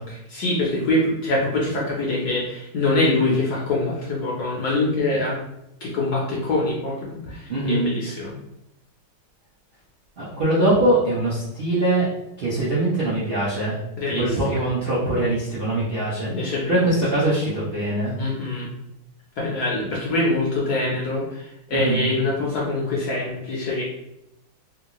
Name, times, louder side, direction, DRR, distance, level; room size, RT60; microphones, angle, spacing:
voice 1, 0.1-5.4 5.8-8.3 14.0-14.4 16.2-16.8 18.2-18.7 19.4-23.8, left 2 dB, 65° left, -4 dB, 1.0 m, -24 dB
voice 2, 7.5-8.0 10.2-12.1 12.4-13.8 14.2-16.3 16.7-18.2 21.7-22.1, right 1 dB, 75° right, -9 dB, 0.5 m, -22 dB
3.5 x 2.4 x 2.9 m, 0.84 s
omnidirectional pair, 2.3 m